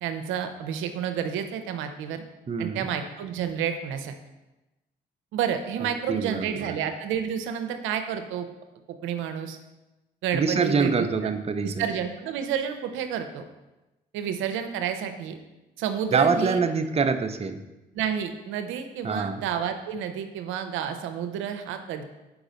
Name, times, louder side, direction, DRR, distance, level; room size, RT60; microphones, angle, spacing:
voice 1, 0.0-2.2 2.6-4.2 5.3-8.5 9.0-9.6 10.2-11.3 11.6-13.5 14.1-15.4 15.8-16.6 17.9-22.0, right 8 dB, 85° right, 7 dB, 0.6 m, -30 dB
voice 2, 2.5-2.9 5.8-6.7 10.3-11.9 16.1-17.6 19.0-19.4, right 5 dB, 30° right, 8 dB, 0.6 m, -25 dB
4.7 x 4.0 x 5.0 m, 1.0 s
supercardioid pair, 60°, 20 cm